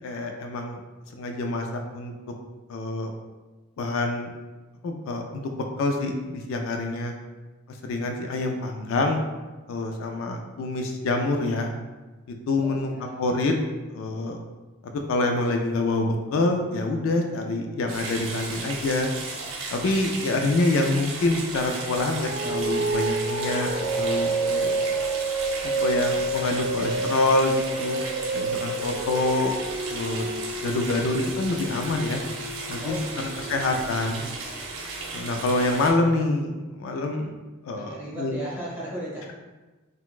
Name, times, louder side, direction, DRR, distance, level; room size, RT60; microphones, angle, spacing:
voice 1, 0.0-0.8 1.1-1.7 1.9-2.1 2.7-3.1 3.8-4.3 4.8-7.1 7.8-9.2 9.7-11.7 12.3-12.9 13.2-13.6 13.9-14.4 14.8-19.1 19.7-23.7 23.9-24.8 25.6-28.0 28.3-29.5 29.9-32.2 32.7-33.0 33.5-34.2 35.1-37.3 37.6-38.3, left 2 dB, 65° left, 4 dB, 0.3 m, -26 dB
voice 2, 12.5-13.3 32.8-33.8 37.7-39.3, right 1 dB, 10° right, -8 dB, 0.9 m, -37 dB
sound 1, 17.9-35.9, right 3 dB, 70° right, 0.6 m, -35 dB
sound 2, 21.9-34.7, right 2 dB, 25° right, 0.4 m, -29 dB
3.9 x 2.1 x 2.3 m, 1.2 s
head